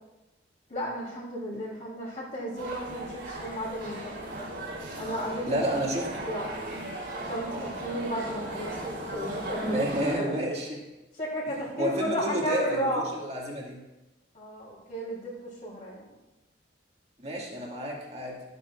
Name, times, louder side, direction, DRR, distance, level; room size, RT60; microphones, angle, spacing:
voice 1, 0.7-4.5 5.0-5.7 6.2-6.5 7.3-9.8 10.2-10.3 11.1-13.1 14.3-16.1, equal, 45° left, -4 dB, 3.1 m, -33 dB
sound 1, 2.6-10.2, right 1 dB, 75° right, 3.3 m, -37 dB
voice 2, 5.5-6.1 9.6-10.8 11.7-13.8 17.2-18.4, right 1 dB, 35° right, -2 dB, 1.9 m, -30 dB
13.5 x 8.2 x 2.4 m, 1.0 s
head